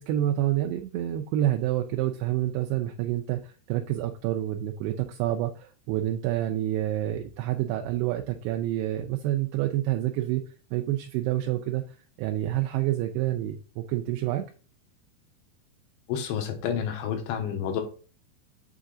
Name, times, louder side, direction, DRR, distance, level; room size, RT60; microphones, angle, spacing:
voice 1, 0.0-10.4 10.7-11.8 12.2-14.4, right 13 dB, 80° right, 4 dB, 2.5 m, -28 dB
voice 2, 16.1-17.8, left 8 dB, 85° left, 4 dB, 3.4 m, -29 dB
8.0 x 3.7 x 3.9 m, 0.37 s
omnidirectional pair, 5.1 m